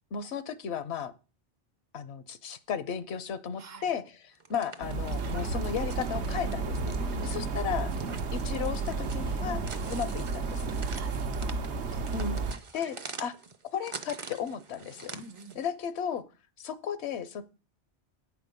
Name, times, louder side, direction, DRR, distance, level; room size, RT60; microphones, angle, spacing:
voice 1, 0.1-1.1 1.9-4.0 4.5-7.0 7.3-7.9 8.3-9.6 9.9-10.7 12.1-12.4 12.7-13.3 13.7-15.1 15.6-16.2 16.6-17.4, left 7 dB, 75° left, 1.0 m, -34 dB
voice 2, 3.6-3.9 6.9-7.5 9.4-9.7 10.9-11.6 15.1-15.6, right 2 dB, 65° right, 1.1 m, -46 dB
sound 1, 4.3-15.7, right 4 dB, 40° right, 0.5 m, -46 dB
sound 2, 4.8-12.5, right 3 dB, 90° right, 1.0 m, -32 dB
8.9 x 4.9 x 5.2 m
omnidirectional pair, 1.1 m